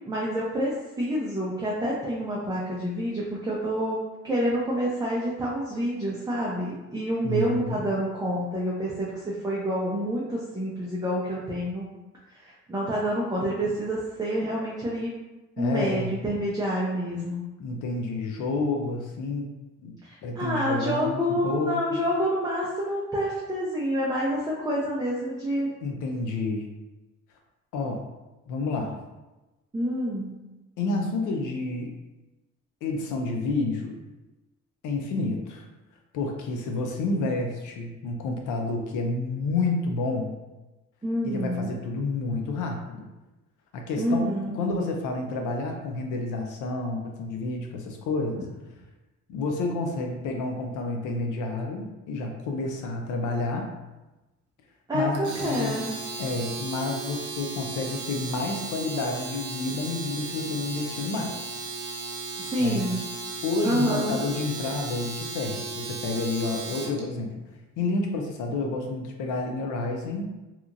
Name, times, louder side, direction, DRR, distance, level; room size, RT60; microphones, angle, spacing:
voice 1, 0.1-4.0 4.2-11.8 12.3-15.1 15.6-17.4 20.0-25.7 29.7-30.4 41.0-41.8 44.0-44.6 54.9-56.0 62.4-63.0 63.6-64.2, equal, 15° right, -5 dB, 0.5 m, -28 dB
voice 2, 7.2-7.9 15.6-16.1 17.6-19.5 19.8-21.8 25.8-26.7 27.7-28.1 28.5-29.0 30.8-31.9 32.8-33.9 34.8-35.7 36.1-40.4 41.2-43.1 43.7-48.5 49.3-53.7 54.9-55.8 56.2-61.4 62.6-62.9 63.4-67.3 67.8-70.4, left 3 dB, 85° left, 2 dB, 0.6 m, -29 dB
Domestic sounds home sounds, 55.1-67.0, right 3 dB, 80° right, 0.7 m, -36 dB
2.9 x 2.4 x 2.5 m, 1.1 s
cardioid pair, 90°, 30 cm